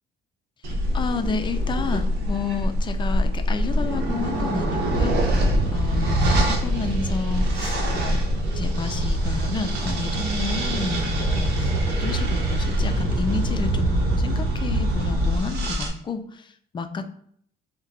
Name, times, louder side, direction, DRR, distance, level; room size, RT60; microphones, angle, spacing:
sound 1, 0.6-15.9, right 1 dB, 75° right, 0.9 m, -24 dB
voice 1, 0.9-8.2 8.5-11.7 12.0-17.1, left 4 dB, 30° left, 7 dB, 0.4 m, -31 dB
3.8 x 2.2 x 4.1 m, 0.63 s
cardioid pair, 110°, 17 cm